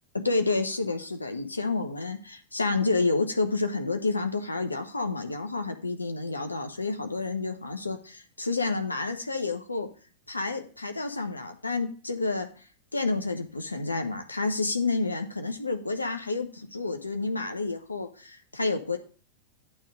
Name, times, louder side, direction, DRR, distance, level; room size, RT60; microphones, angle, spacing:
voice 1, 0.1-9.9 10.3-12.5 12.9-19.0, left 3 dB, 80° left, 6 dB, 1.0 m, -29 dB
9.0 x 3.6 x 6.4 m, 0.40 s
figure-of-eight pair, 90°, 0 cm